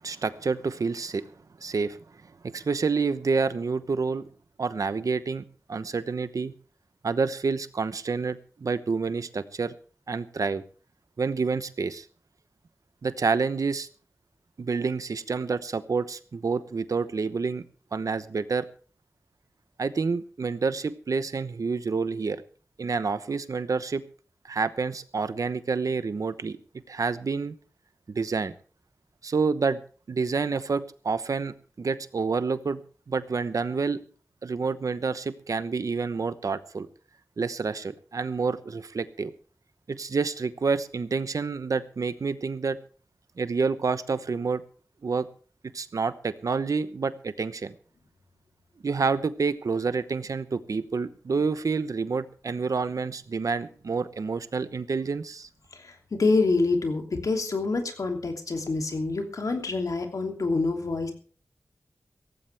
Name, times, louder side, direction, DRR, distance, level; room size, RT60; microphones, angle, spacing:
voice 1, 0.0-1.3 1.6-2.0 2.4-4.3 4.6-6.5 7.0-9.7 10.1-10.6 11.2-12.0 13.0-13.9 14.6-17.6 17.9-18.7 19.8-22.4 22.8-24.0 24.5-26.6 26.9-27.5 28.1-28.5 29.2-29.8 30.1-32.8 33.1-34.0 34.4-36.9 37.4-39.3 39.9-42.8 43.4-44.6 45.0-45.3 45.7-47.7 48.8-55.5, right 4 dB, 80° right, 13 dB, 1.0 m, -28 dB
voice 2, 55.7-61.1, left 3 dB, 85° left, 3 dB, 3.0 m, -26 dB
17.0 x 15.5 x 3.5 m, 0.40 s
wide cardioid pair, 85°, 6 cm